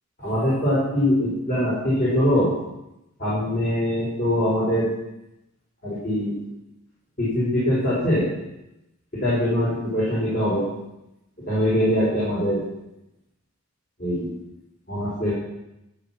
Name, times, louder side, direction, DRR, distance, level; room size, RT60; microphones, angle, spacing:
voice 1, 0.2-2.5 3.2-4.9 5.8-6.4 7.2-8.3 9.2-10.7 11.5-12.6 14.0-14.3 14.9-15.3, equal, 40° left, -9 dB, 5.3 m, -22 dB
13.0 x 7.9 x 5.9 m, 0.88 s
head